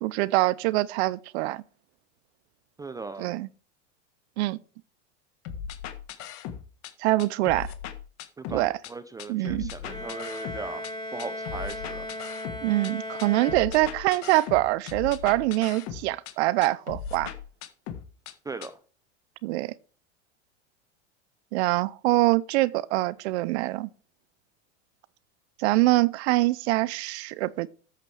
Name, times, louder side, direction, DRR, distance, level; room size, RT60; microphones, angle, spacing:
voice 1, 0.0-1.6 3.2-3.5 4.4-4.6 7.0-7.7 8.5-8.8 9.3-9.7 12.6-17.3 19.4-19.7 21.5-23.9 25.6-27.7, right 18 dB, 60° right, 0.6 m, -24 dB
voice 2, 2.8-3.4 8.4-10.8 11.1-12.1 18.4-18.8, right 3 dB, 10° right, 0.4 m, -38 dB
sound 1, 5.5-6.9 7.2-8.9 9.2-10.9 11.2-12.9 13.2-16.3 16.6-18.3 18.6-18.7, left 8 dB, 45° left, 1.5 m, -38 dB
Bowed string instrument, 9.8-14.3, left 1 dB, 10° left, 3.1 m, -37 dB
13.5 x 8.3 x 3.3 m
supercardioid pair, 125°, 38 cm